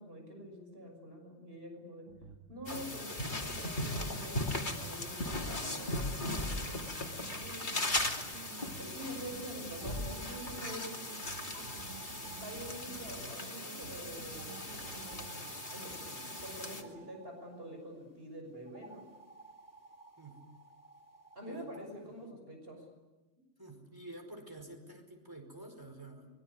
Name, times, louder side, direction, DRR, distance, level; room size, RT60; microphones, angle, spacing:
voice 1, 0.0-2.1 2.5-7.8 8.8-10.9 12.4-14.7 14.9-19.0 21.3-22.8, equal, 55° right, 3 dB, 6.4 m, -47 dB
sound 1, 2.1-15.4, right 5 dB, 85° right, 2.0 m, -51 dB
sound 2, 2.7-16.8, left 1 dB, 40° left, 2.9 m, -38 dB
sound 3, 9.8-13.6 14.3-17.6 18.7-21.9, right 4 dB, 15° left, 3.0 m, -55 dB
voice 2, 21.5-21.8 22.2-22.4 23.6-26.3, right 1 dB, 15° right, 4 dB, 4.9 m, -49 dB
24.5 x 22.5 x 9.8 m, 1.2 s
omnidirectional pair, 1.2 m